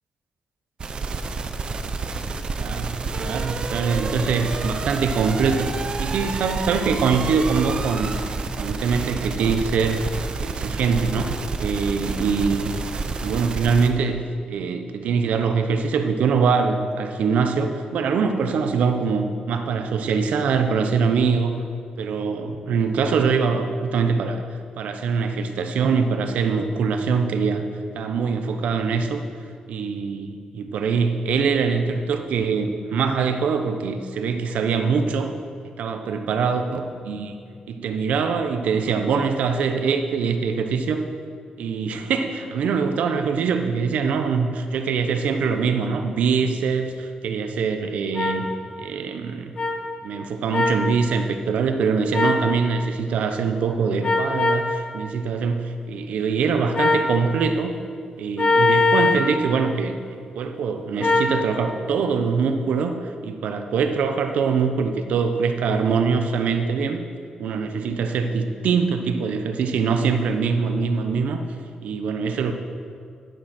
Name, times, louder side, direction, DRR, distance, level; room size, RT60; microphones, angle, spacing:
sound 1, 0.8-13.9, right 4 dB, 40° right, 0.7 m, -29 dB
voice 1, 2.6-8.2 8.6-10.0 10.4-12.7 13.2-14.2 14.5-21.6 22.0-24.4 24.8-27.6 27.9-29.2 29.7-35.3 35.8-37.3 37.7-41.0 41.6-48.5 48.8-49.5 50.0-57.7 58.2-60.0 60.3-67.0 67.4-71.4 71.8-72.5, right 5 dB, 80° right, 7 dB, 0.9 m, -23 dB
sound 2, 48.1-48.3 49.6-49.7 50.5-50.8 52.1-52.4 54.0-54.6 56.7-57.1 58.4-59.2 61.0-61.3, left 3 dB, 40° left, 2.6 m, -20 dB
11.0 x 10.5 x 4.3 m, 2.2 s
cardioid pair, 125°, 2 cm